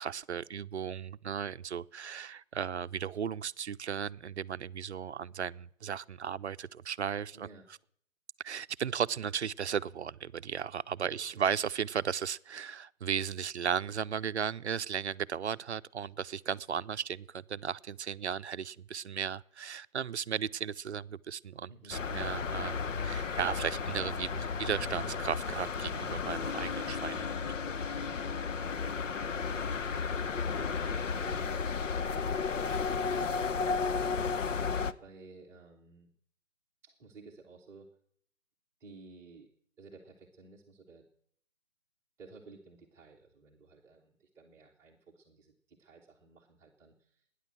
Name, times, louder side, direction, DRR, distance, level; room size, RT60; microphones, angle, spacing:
voice 1, 0.0-7.5 8.4-27.2, right 7 dB, 55° right, 0.6 m, -35 dB
voice 2, 7.3-7.7 11.0-11.5 21.4-22.2 28.0-36.1 36.8-37.9 38.8-39.5 39.8-41.1 42.2-47.3, right 3 dB, 5° right, 1.1 m, -55 dB
sound 1, 21.9-34.9, left 5 dB, 65° left, 1.0 m, -33 dB
19.0 x 10.0 x 7.6 m
hypercardioid pair, 160°, 40 cm